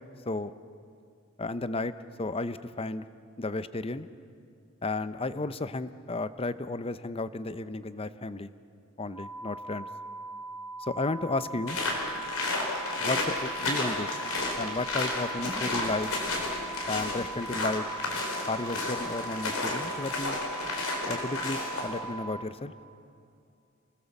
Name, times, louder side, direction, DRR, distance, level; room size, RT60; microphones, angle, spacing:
voice 1, 1.4-1.9 2.2-3.1 3.4-4.1 4.8-8.5 9.0-9.9 10.9-11.8 13.0-14.2 14.6-16.1 16.9-17.8 18.5-20.4 21.1-22.7, left 2 dB, 25° left, 13 dB, 0.7 m, -33 dB
sound 1, 9.1-22.4, right 2 dB, ahead, 3.8 m, -41 dB
sound 2, 11.7-22.0, left 2 dB, 70° left, 4.6 m, -32 dB
28.0 x 20.0 x 7.1 m, 2.5 s
head